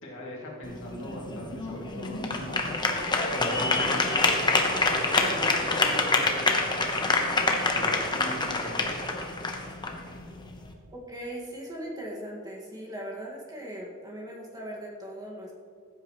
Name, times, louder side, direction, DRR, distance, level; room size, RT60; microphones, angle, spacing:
voice 1, 0.0-8.9, equal, 65° left, -3 dB, 2.5 m, -41 dB
sound 1, 0.6-10.7, left 3 dB, 20° left, 1.0 m, -27 dB
voice 2, 10.9-15.5, right 1 dB, 20° right, -3 dB, 1.9 m, -39 dB
15.5 x 8.8 x 3.1 m, 2.2 s
head